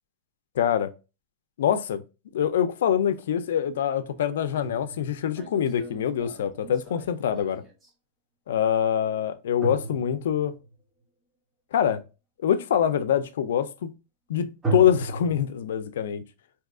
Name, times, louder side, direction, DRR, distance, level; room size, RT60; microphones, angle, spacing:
voice 1, 0.6-0.9 1.6-2.0 2.3-7.6 8.5-10.5 11.7-12.0 12.4-13.9 14.3-16.2, left 9 dB, 90° left, 0.5 m, -24 dB
sound 1, 3.2-3.3 4.2-7.9 9.6-10.7 14.6-15.3, right 3 dB, 15° right, 0.7 m, -34 dB
3.5 x 2.8 x 2.3 m
supercardioid pair, 150°, 0 cm